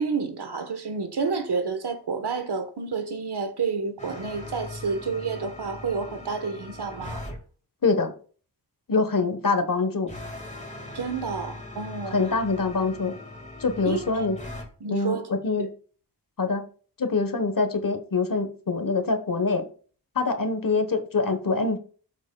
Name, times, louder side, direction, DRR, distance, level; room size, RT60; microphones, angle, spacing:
voice 1, 0.0-7.3 10.9-12.2 13.8-14.3 14.8-15.3 15.6-15.7, right 5 dB, 75° right, 1.3 m, -30 dB
sound 1, 4.0-7.4 10.1-14.7, left 2 dB, 20° left, 2.1 m, -40 dB
voice 2, 7.8-8.1 8.9-10.1 12.1-13.1 13.6-14.4 14.9-15.7 16.4-16.6 17.0-19.7 20.1-21.8, left 4 dB, 55° left, 1.3 m, -24 dB
12.5 x 6.1 x 2.3 m
wide cardioid pair, 80°, 40 cm